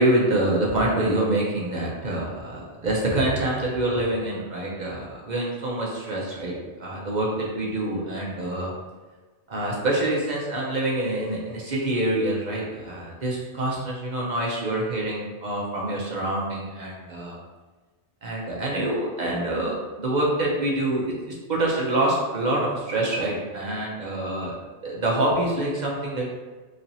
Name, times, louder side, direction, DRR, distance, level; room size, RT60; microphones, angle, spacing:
voice 1, 0.0-6.5 6.8-8.7 9.5-17.4 18.2-21.1 21.5-24.6 24.8-26.3, right 1 dB, 45° right, -4 dB, 0.7 m, -26 dB
3.1 x 2.8 x 3.9 m, 1.3 s
omnidirectional pair, 1.2 m